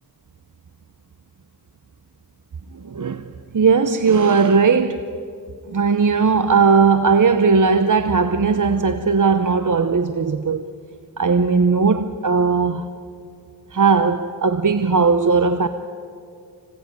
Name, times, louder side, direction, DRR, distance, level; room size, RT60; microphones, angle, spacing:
voice 1, 2.7-5.1 5.7-10.6 11.2-12.9 13.7-15.7, right 5 dB, 55° right, 0.9 m, -18 dB
26.0 x 18.0 x 9.2 m
cardioid pair, 50°, 38 cm